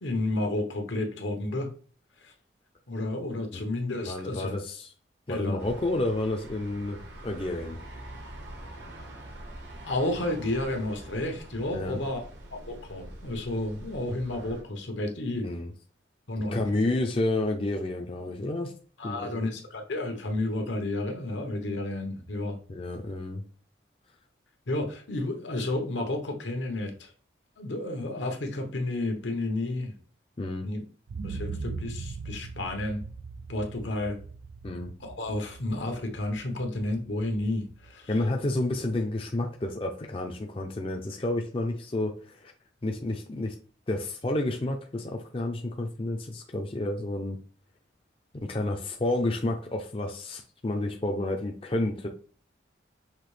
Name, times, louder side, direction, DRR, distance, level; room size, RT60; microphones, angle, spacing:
voice 1, 0.0-1.7 2.2-2.3 2.9-4.5 5.3-5.6 9.8-12.2 12.5-15.4 16.3-16.9 19.0-22.6 24.7-27.1 27.6-29.9 30.6-30.8 31.2-33.0 33.5-34.2 35.0-38.2, left 2 dB, 80° left, 4 dB, 1.0 m, -31 dB
voice 2, 4.1-4.9 5.3-7.8 11.7-12.0 15.4-15.7 16.5-18.7 19.0-19.5 22.7-23.4 30.4-30.7 34.6-34.9 38.1-42.5 42.8-43.5 43.9-47.4 48.3-52.1, left 2 dB, 30° left, 2 dB, 0.4 m, -30 dB
sound 1, 5.6-14.6, right 1 dB, 75° right, 1.0 m, -44 dB
sound 2, 31.1-39.0 39.4-39.5, right 4 dB, 90° right, 0.4 m, -41 dB
5.8 x 2.8 x 3.2 m, 0.43 s
head